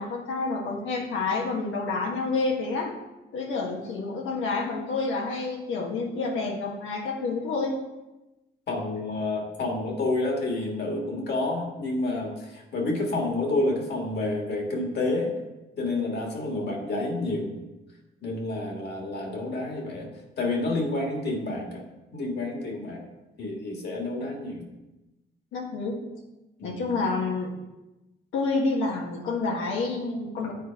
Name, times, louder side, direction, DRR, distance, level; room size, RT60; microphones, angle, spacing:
voice 1, 0.0-2.9 3.3-7.8 25.5-26.0 26.6-27.5 28.3-30.5, left 3 dB, 85° left, 0 dB, 1.3 m, -28 dB
voice 2, 8.7-15.3 15.8-17.5 18.2-20.1 20.4-21.8 22.1-23.0 23.4-24.7 26.6-26.9, left 2 dB, 55° left, 1 dB, 1.8 m, -29 dB
8.2 x 4.1 x 4.6 m, 1.0 s
cardioid pair, 90°, 20 cm